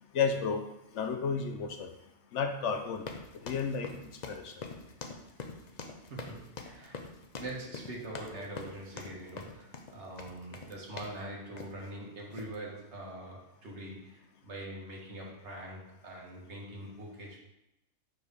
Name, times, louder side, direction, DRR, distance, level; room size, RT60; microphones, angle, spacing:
voice 1, 0.1-0.6 0.9-1.9 2.3-3.0 3.4-3.9 4.3-4.5, left 5 dB, 70° left, 7 dB, 0.9 m, -31 dB
sound 1, 3.0-11.2 11.6-11.9 12.3-12.6, left 4 dB, 45° left, 0.6 m, -44 dB
voice 2, 6.0-7.0 7.3-17.4, right 1 dB, 60° right, -2 dB, 1.7 m, -43 dB
4.9 x 4.5 x 5.3 m, 0.87 s
omnidirectional pair, 1.3 m